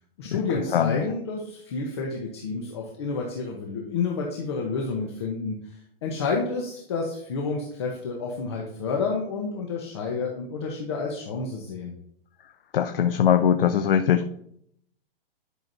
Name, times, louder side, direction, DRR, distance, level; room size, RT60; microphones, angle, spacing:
voice 1, 0.2-11.9, left 4 dB, 25° left, 0 dB, 0.8 m, -30 dB
voice 2, 12.7-14.4, left 9 dB, 70° left, 7 dB, 0.7 m, -21 dB
11.0 x 5.9 x 2.6 m, 0.68 s
hypercardioid pair, 175°, 30 cm